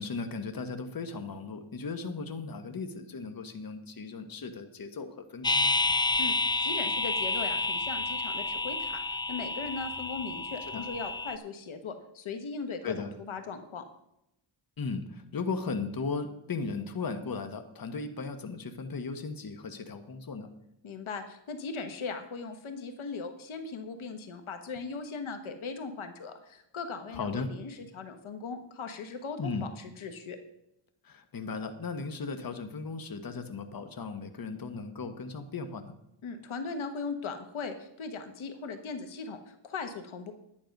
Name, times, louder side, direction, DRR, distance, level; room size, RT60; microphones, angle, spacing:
voice 1, 0.0-5.7 10.7-10.8 12.8-13.1 14.8-20.5 27.1-27.5 29.4-29.7 31.0-36.0, left 4 dB, 45° left, 7 dB, 1.4 m, -36 dB
sound 1, 5.4-11.4, left 3 dB, 10° left, 0.3 m, -30 dB
voice 2, 6.2-9.0 9.3-13.8 20.8-30.4 36.2-40.3, left 4 dB, 80° left, 8 dB, 1.3 m, -39 dB
11.0 x 9.8 x 5.3 m, 0.82 s
cardioid pair, 85°, 47 cm